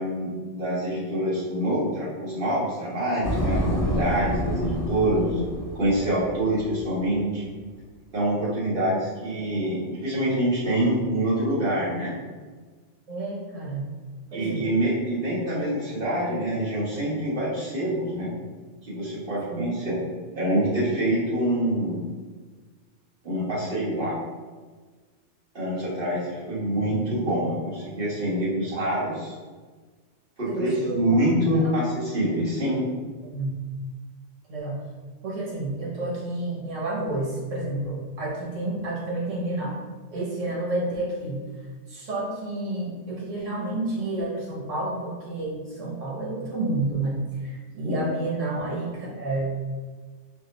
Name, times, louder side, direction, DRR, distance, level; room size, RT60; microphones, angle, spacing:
voice 1, 0.0-5.4 5.7-7.4 8.1-12.1 14.3-18.3 18.8-20.0 20.3-22.0 23.2-24.2 25.5-29.3 30.4-32.8 47.8-48.0, right 1 dB, 45° right, -8 dB, 1.5 m, -26 dB
sound 1, 3.2-7.0, equal, 25° left, 0.4 m, -28 dB
voice 2, 13.1-13.9 14.3-14.7 19.5-20.0 30.4-31.1 31.6-31.7 33.2-33.6 34.5-34.8 35.2-39.8 40.1-41.4 41.9-49.6, right 2 dB, 75° right, -5 dB, 1.4 m, -30 dB
4.3 x 2.1 x 4.0 m, 1.4 s
omnidirectional pair, 1.3 m